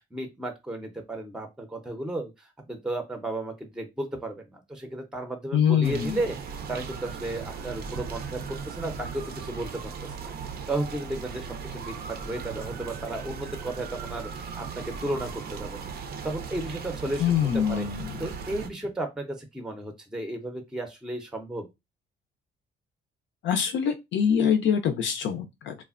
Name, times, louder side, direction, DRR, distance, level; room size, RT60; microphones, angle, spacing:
voice 1, 0.0-10.3 10.7-14.3 14.6-15.9 16.2-17.9 18.2-21.7, right 1 dB, 5° right, 0.5 m, -34 dB
voice 2, 5.5-6.2 17.2-18.4 23.4-25.8, left 8 dB, 70° left, 0.5 m, -24 dB
sound 1, 5.8-18.7, right 6 dB, 55° right, 0.5 m, -37 dB
3.2 x 2.1 x 2.4 m
cardioid pair, 90°, 20 cm